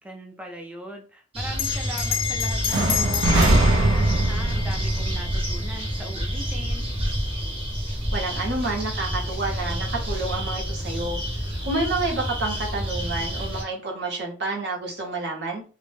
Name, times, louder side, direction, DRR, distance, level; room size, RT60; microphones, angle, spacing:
voice 1, 0.0-6.9, equal, 5° right, 2 dB, 0.5 m, -40 dB
sound 1, 1.3-13.6, equal, 30° right, 0.8 m, -29 dB
Bell, 1.5-6.4, left 8 dB, 70° left, 0.3 m, -30 dB
sound 2, 2.7-6.6, right 2 dB, 85° right, 0.4 m, -23 dB
voice 2, 8.1-11.2 11.6-15.6, right 2 dB, 65° right, 0 dB, 0.8 m, -29 dB
2.1 x 2.0 x 3.1 m, 0.36 s
head